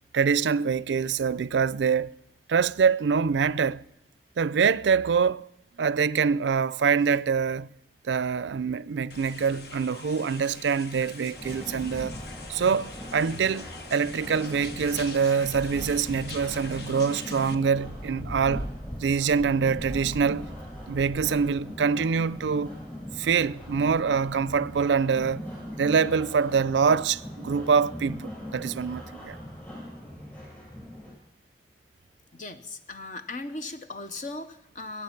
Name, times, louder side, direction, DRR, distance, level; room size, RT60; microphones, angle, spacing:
voice 1, 0.1-2.1 2.5-3.8 4.4-5.5 5.8-7.7 8.1-12.2 12.5-18.7 19.0-20.5 20.9-22.8 23.2-25.5 25.8-29.4, right 6 dB, 90° right, 0.4 m, -25 dB
sound 1, 9.1-17.6, left 4 dB, 65° left, 1.3 m, -44 dB
sound 2, 11.3-31.1, equal, 10° left, 7.7 m, -40 dB
voice 2, 32.3-35.0, left 2 dB, 45° left, 0.7 m, -38 dB
21.0 x 8.9 x 5.8 m
head